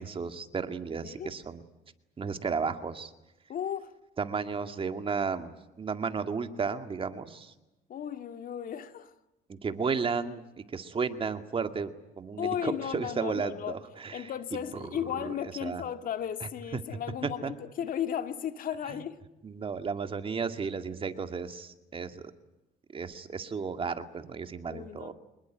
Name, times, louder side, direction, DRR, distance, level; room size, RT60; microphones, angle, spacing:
voice 1, 0.0-1.6 2.2-3.1 4.2-7.5 9.5-14.3 14.7-14.8 15.1-15.3 15.6-15.8 16.4-16.8 17.2-17.5 18.9-19.0 19.4-22.3 22.9-25.1, right 5 dB, 30° right, 2.2 m, -34 dB
voice 2, 1.0-1.3 3.5-3.9 7.9-9.1 12.4-13.8 14.1-19.2 24.7-25.1, left 9 dB, 55° left, 2.1 m, -35 dB
26.0 x 21.0 x 9.1 m
cardioid pair, 110°, 17 cm